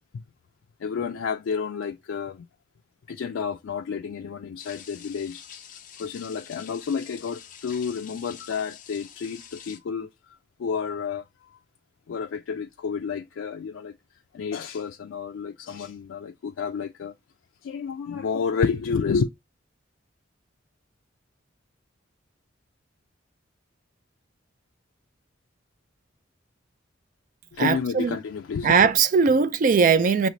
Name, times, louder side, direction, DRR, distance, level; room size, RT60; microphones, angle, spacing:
voice 1, 0.8-2.5 3.1-5.4 6.0-11.6 12.1-13.9 14.3-17.1 17.6-19.3 27.5-28.9, left 6 dB, 80° left, 0.3 m, -30 dB
sound 1, 4.6-9.8, left 8 dB, 45° left, 0.6 m, -46 dB
voice 2, 27.6-28.2 28.6-30.3, right 5 dB, 45° right, 0.4 m, -20 dB
5.7 x 3.1 x 2.6 m
head